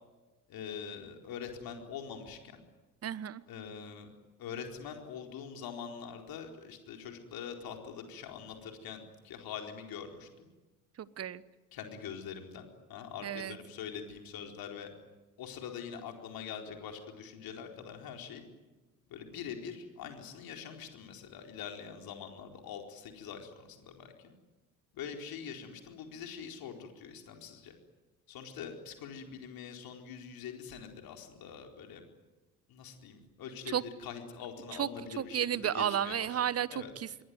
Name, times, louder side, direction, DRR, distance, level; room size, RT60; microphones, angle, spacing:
voice 1, 0.5-2.6 3.5-4.1 4.4-10.5 11.7-14.9 15.4-18.4 19.1-24.3 24.9-27.7 28.3-32.0 32.7-36.3 36.7-36.9, left 7 dB, 55° left, 4 dB, 4.4 m, -44 dB
voice 2, 3.0-3.4 11.0-11.4 13.2-13.6 33.7-33.8 34.8-34.9 35.2-37.2, right 9 dB, 35° right, 19 dB, 1.2 m, -32 dB
27.5 x 22.5 x 9.4 m, 1.2 s
figure-of-eight pair, 50°, 43 cm